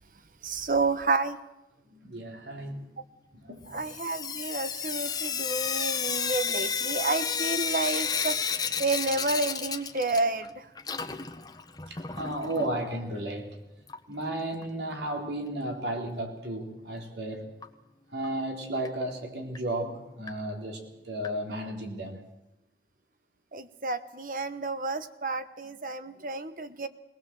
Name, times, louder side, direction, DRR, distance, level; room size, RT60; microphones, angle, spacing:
voice 1, 0.4-1.4 3.7-8.4 8.8-10.7 23.5-26.9, right 3 dB, 50° right, 11 dB, 1.1 m, -30 dB
voice 2, 1.9-2.9 3.3-3.8 11.9-13.6 14.1-17.4 18.1-22.2, right 1 dB, 80° right, 2 dB, 3.8 m, -34 dB
Sink (filling or washing) / Drip, 3.7-10.5 10.8-12.7 13.9-14.0 14.3-14.4 14.6-14.7 17.6-17.7 18.2-18.3 18.9-19.0 19.6-19.7 20.3-20.4 21.2-21.3, left 6 dB, 20° left, 1.0 m, -32 dB
20.5 x 19.5 x 7.5 m, 0.94 s
head